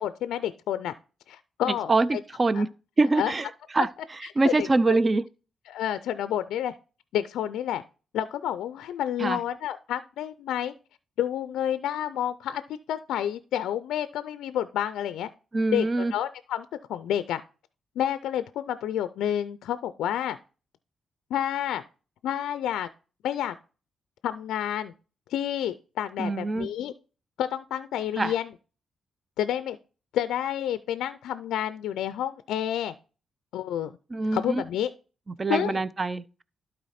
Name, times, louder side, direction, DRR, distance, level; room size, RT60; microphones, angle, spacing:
voice 1, 0.0-0.9 1.3-2.2 2.6-2.7 3.2-3.3 3.8-3.9 4.4-5.0 5.7-6.7 7.1-7.8 8.1-10.7 11.2-12.6 12.9-15.3 15.7-17.4 18.0-20.4 21.3-21.8 22.2-22.9 23.2-23.5 24.2-24.9 25.3-26.9 27.4-28.5 29.4-29.8 30.1-32.9 33.5-34.0 34.3-34.9 35.5-35.8, left 10 dB, 80° left, 0.4 m, -29 dB
voice 2, 1.6-2.7 3.0-3.5 3.7-3.9 4.4-5.2 9.2-9.4 15.5-16.1 26.2-26.7 28.2-28.3 34.1-34.6 35.3-36.4, right 3 dB, 35° right, 0.6 m, -24 dB
12.0 x 4.2 x 4.2 m
supercardioid pair, 45°, 0 cm